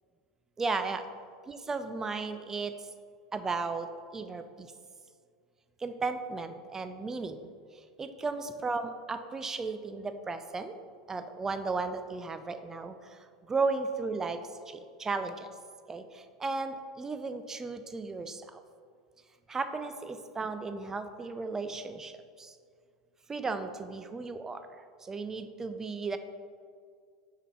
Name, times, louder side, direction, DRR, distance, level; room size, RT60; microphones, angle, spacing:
voice 1, 0.6-1.1 1.5-2.7 3.3-4.7 5.8-7.4 8.0-10.7 11.1-12.9 13.5-14.4 14.7-15.5 15.9-18.6 19.5-22.5 23.3-24.6 25.0-26.2, right 4 dB, 20° right, 9 dB, 0.5 m, -35 dB
5.6 x 5.6 x 4.7 m, 2.1 s
hypercardioid pair, 85°, 3 cm